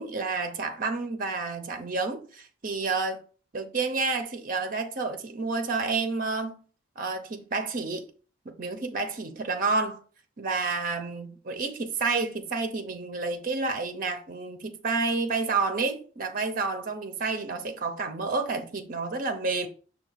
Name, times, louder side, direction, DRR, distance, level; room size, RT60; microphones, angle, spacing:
voice 1, 0.0-3.2 3.5-6.6 7.0-8.1 8.5-10.0 10.4-19.7, right 3 dB, 45° right, 0.6 m, -30 dB
5.7 x 2.3 x 4.0 m
head